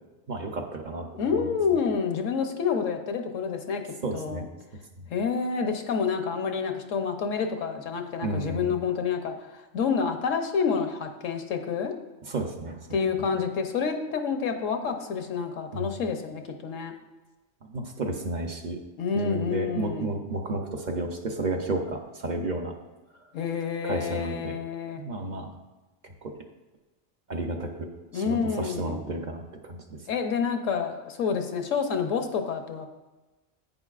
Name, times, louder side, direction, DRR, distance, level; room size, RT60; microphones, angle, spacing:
voice 1, 0.3-1.1 4.0-4.5 8.2-8.7 12.3-12.8 15.7-15.9 17.6-18.8 19.1-22.7 23.8-24.5 25.0-25.5 26.2-26.3 27.3-29.8, right 2 dB, 40° right, 3 dB, 0.7 m, -32 dB
voice 2, 1.2-3.8 4.1-4.4 5.1-11.9 12.9-16.9 19.0-20.2 23.3-25.0 28.1-29.1 30.1-32.9, left 6 dB, 75° left, 5 dB, 1.2 m, -28 dB
10.5 x 8.8 x 2.4 m, 1.1 s
omnidirectional pair, 1.4 m